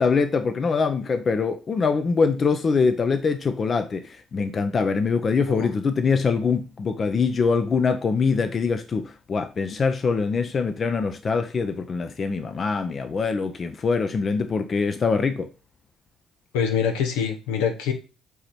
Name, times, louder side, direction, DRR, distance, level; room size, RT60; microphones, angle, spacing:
voice 1, 0.0-15.5, left 5 dB, 45° left, 0.7 m, -23 dB
voice 2, 16.5-17.9, left 7 dB, 85° left, 1.0 m, -24 dB
8.2 x 3.1 x 4.3 m
hypercardioid pair, 60°, 0 cm